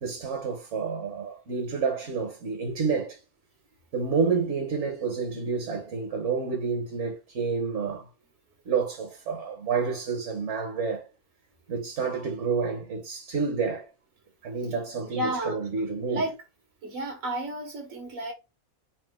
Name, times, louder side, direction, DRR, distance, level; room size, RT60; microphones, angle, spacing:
voice 1, 0.0-3.2 3.9-8.1 8.6-11.1 11.7-13.9 14.4-16.2, right 5 dB, 65° right, 1.2 m, -29 dB
voice 2, 15.1-15.6 16.1-16.3 16.8-18.3, right 1 dB, 85° right, 1.8 m, -31 dB
4.3 x 2.6 x 3.6 m
omnidirectional pair, 1.4 m